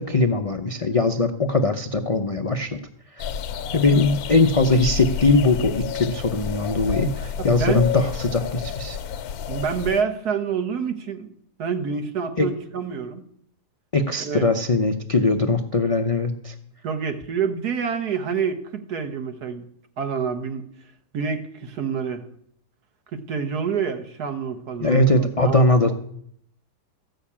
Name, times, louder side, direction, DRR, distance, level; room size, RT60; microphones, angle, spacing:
voice 1, 0.0-2.8 3.2-3.3 3.7-9.0 12.4-12.5 13.9-16.5 24.8-25.9, left 2 dB, 45° left, 5 dB, 0.4 m, -21 dB
sound 1, 3.2-10.0, left 8 dB, 70° left, 1.2 m, -30 dB
voice 2, 7.4-7.9 9.5-11.3 11.6-13.2 14.2-14.5 16.8-19.7 20.0-20.6 21.1-22.2 23.1-25.9, right 6 dB, 70° right, 7 dB, 1.7 m, -27 dB
14.5 x 6.5 x 8.6 m, 0.68 s
omnidirectional pair, 1.8 m